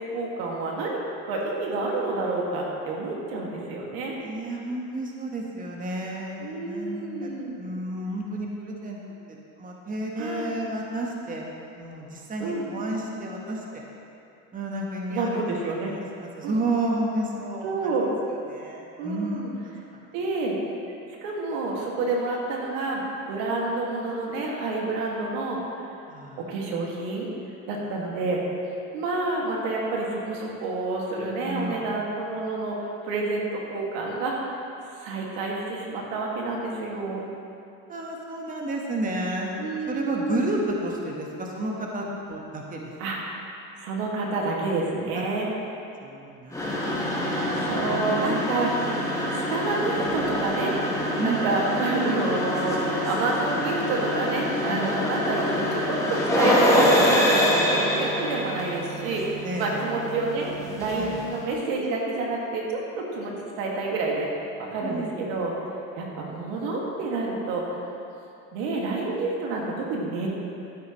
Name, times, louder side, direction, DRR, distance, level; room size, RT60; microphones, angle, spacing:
voice 1, 0.0-4.1 6.4-7.6 10.2-10.6 12.4-12.7 15.1-15.9 16.4-16.6 17.6-18.1 19.0-19.5 20.1-20.6 21.2-25.6 26.4-27.3 27.7-28.4 28.9-34.6 35.0-37.2 39.6-40.7 43.0-43.2 43.8-45.5 47.6-48.7 49.3-50.8 51.2-60.5 60.7-64.3 64.6-65.5 66.0-67.8 68.5-70.3, right 3 dB, 75° right, -2 dB, 2.1 m, -29 dB
voice 2, 4.2-9.0 9.3-13.8 14.5-15.6 15.9-18.1 18.5-20.0 26.1-26.4 31.4-31.9 37.9-39.5 39.9-42.9 45.1-45.2 46.0-48.5 51.2-51.4 54.7-54.9 59.4-59.8 61.0-61.2 64.8-65.1, right 1 dB, 20° right, -1 dB, 1.3 m, -32 dB
sound 1, 46.5-61.4, left 1 dB, 10° left, 1.9 m, -25 dB
12.5 x 10.0 x 3.1 m, 2.8 s
supercardioid pair, 105°, 38 cm